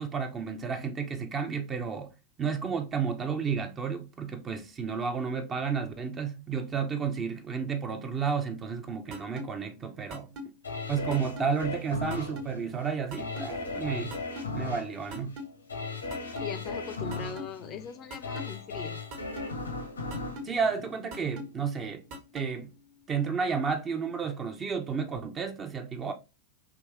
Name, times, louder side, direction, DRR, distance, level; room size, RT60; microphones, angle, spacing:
voice 1, 0.0-2.1 2.4-10.3 10.9-14.2 14.5-15.4 20.4-22.0 22.3-22.7 23.1-26.1, right 6 dB, 25° right, 0.6 m, -32 dB
sound 1, 9.1-9.4 10.1-10.5 11.1-11.4 12.1-12.5 13.1-13.5 14.1-14.5 15.1-15.4 16.1-16.5 17.1-17.4 18.1-18.5 19.1-19.5 20.1-20.5 21.1-21.4 22.1-22.5, left 1 dB, 45° right, 1.1 m, -39 dB
sound 2, 10.6-21.6 22.0-22.1, left 3 dB, 75° left, 0.8 m, -37 dB
voice 2, 16.4-19.0, left 7 dB, 30° left, 0.5 m, -40 dB
3.5 x 2.9 x 3.0 m
figure-of-eight pair, 90°, 0 cm